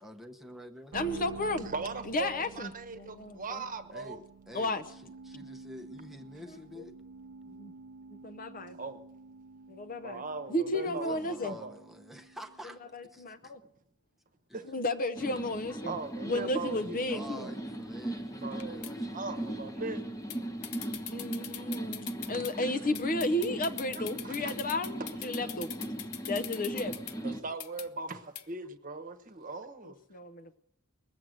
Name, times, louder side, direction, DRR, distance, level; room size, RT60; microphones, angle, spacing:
voice 1, 0.0-1.0 3.9-7.0 10.8-13.5 14.5-14.6 17.1-19.7 24.4-24.6 25.6-25.7 26.4-27.5, equal, ahead, 0.9 m, -49 dB
voice 2, 0.9-1.7 2.1-3.6 4.5-4.8 7.5-7.7 8.2-8.8 9.7-10.2 10.5-11.6 12.9-13.6 14.6-16.0 16.2-17.5 21.1-25.8 26.3-26.9 29.8-30.6, left 1 dB, 40° left, 0.7 m, -33 dB
sound 1, 0.9-13.2, right 5 dB, 60° right, 0.5 m, -50 dB
voice 3, 1.7-4.2 8.8-9.0 10.0-11.2 11.4-11.7 14.5-14.6 15.9-17.5 18.4-18.8 19.1-20.0 22.3-22.7 24.0-25.1 27.2-30.0, right 3 dB, 35° right, 1.2 m, -40 dB
sound 2, 15.1-27.4, right 1 dB, 15° left, 1.2 m, -38 dB
sound 3, 18.5-18.9 20.3-20.4 20.6-22.5 23.0-27.1 27.6-27.9 28.4-28.5, left 11 dB, 80° left, 0.7 m, -42 dB
20.5 x 7.8 x 7.7 m
head